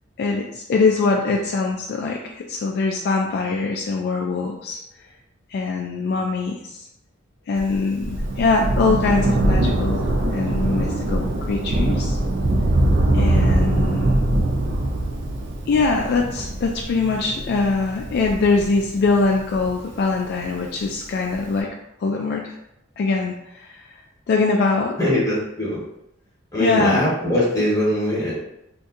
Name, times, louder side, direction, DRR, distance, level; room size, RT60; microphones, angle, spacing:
voice 1, 0.2-4.8 5.5-6.9 7.5-12.2 13.1-14.1 15.7-21.7 22.0-22.5 23.0-23.9 24.3-25.0 26.5-27.0, left 3 dB, 55° left, 1 dB, 0.3 m, -22 dB
Thunder, 7.6-20.4 21.3-21.4, right 1 dB, 65° right, 0.5 m, -22 dB
voice 2, 25.0-25.8 26.5-28.3, left 1 dB, 20° left, -6 dB, 1.2 m, -21 dB
3.9 x 2.6 x 2.5 m, 0.82 s
head